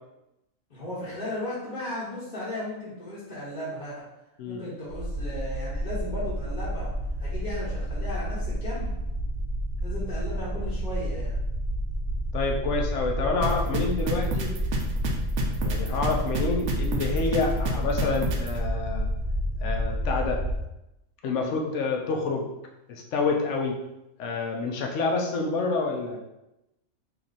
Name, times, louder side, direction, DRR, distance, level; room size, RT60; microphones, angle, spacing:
voice 1, 0.7-4.0 4.5-6.9 7.2-8.9 9.8-11.3, left 1 dB, 40° left, -11 dB, 1.2 m, -35 dB
sound 1, 4.9-20.6, equal, 45° right, 0.9 m, -30 dB
voice 2, 12.3-14.5 15.6-19.1 19.6-20.4 21.2-22.5 22.9-23.8 24.2-26.2, left 4 dB, 65° left, 1 dB, 0.9 m, -28 dB
sound 2, 13.4-18.5, right 2 dB, 85° right, 1.1 m, -29 dB
3.0 x 3.0 x 3.9 m, 0.91 s
omnidirectional pair, 1.4 m